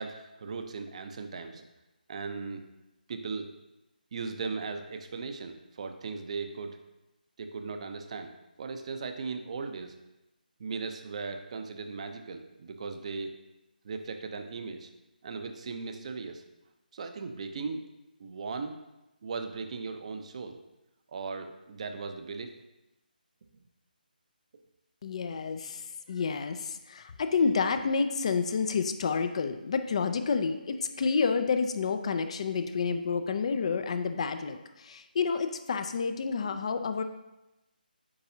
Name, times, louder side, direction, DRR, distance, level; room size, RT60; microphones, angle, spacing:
voice 1, 0.0-1.6 2.1-2.6 3.1-3.5 4.1-6.8 7.4-9.9 10.6-13.4 13.8-14.9 15.2-16.4 16.9-17.8 18.2-18.8 19.2-20.6 21.1-22.5, right 4 dB, 40° right, 7 dB, 0.6 m, -37 dB
voice 2, 25.0-25.8 26.1-37.0, left 5 dB, 40° left, 9 dB, 0.4 m, -29 dB
8.6 x 4.7 x 2.7 m, 0.97 s
figure-of-eight pair, 155°, 5 cm